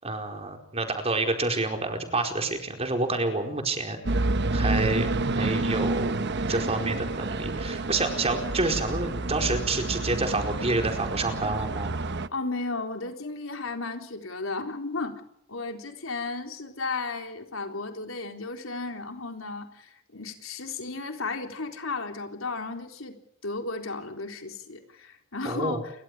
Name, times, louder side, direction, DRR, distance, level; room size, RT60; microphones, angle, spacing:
voice 1, 0.0-4.0 4.5-11.9 25.4-25.8, right 2 dB, 30° right, 4 dB, 4.7 m, -28 dB
sound 1, 4.1-12.3, right 2 dB, 60° right, 1.0 m, -29 dB
voice 2, 12.3-15.2 15.5-23.2 23.4-25.9, left 3 dB, 90° left, 4 dB, 3.9 m, -34 dB
29.0 x 24.0 x 5.0 m, 0.74 s
head